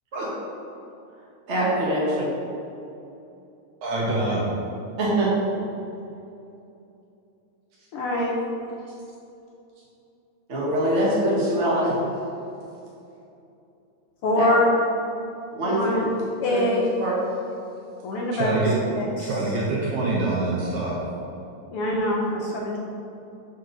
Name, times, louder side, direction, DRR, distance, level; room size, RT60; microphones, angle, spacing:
voice 1, 1.5-2.3 5.0-5.3 10.5-11.9 14.3-14.5 15.5-15.9 16.5-16.6 17.0-17.1, right 1 dB, 25° right, -6 dB, 1.7 m, -23 dB
voice 2, 3.8-4.4 18.3-18.8 19.2-21.0, right 2 dB, 75° right, -4 dB, 2.3 m, -25 dB
voice 3, 7.9-8.3 14.2-14.7 15.6-16.1 16.4-16.8 18.0-18.7 19.0-19.3 21.7-22.8, left 1 dB, 75° left, -3 dB, 1.3 m, -24 dB
6.6 x 5.3 x 5.9 m, 2.8 s
omnidirectional pair, 3.5 m